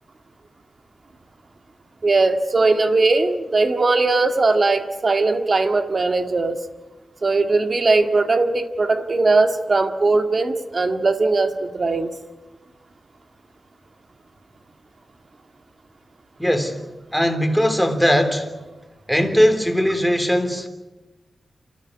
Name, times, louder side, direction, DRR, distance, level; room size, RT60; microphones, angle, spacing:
voice 1, 2.0-6.6 7.2-12.1, right 3 dB, 45° right, 1.9 m, -19 dB
voice 2, 16.4-16.8 17.1-18.5 19.1-20.7, equal, ahead, 3.3 m, -19 dB
28.5 x 14.0 x 9.6 m
wide cardioid pair, 100°, 0 cm